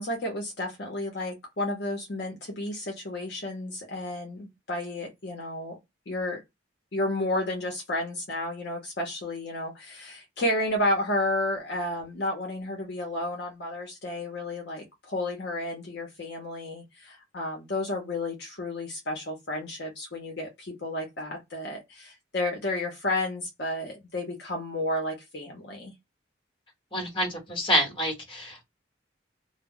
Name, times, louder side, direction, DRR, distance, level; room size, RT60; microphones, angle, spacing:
voice 1, 0.0-5.8 6.1-6.4 6.9-25.9, left 1 dB, 55° left, 0.7 m, -32 dB
voice 2, 26.9-28.6, equal, 25° left, 1.2 m, -27 dB
2.2 x 2.0 x 3.5 m
head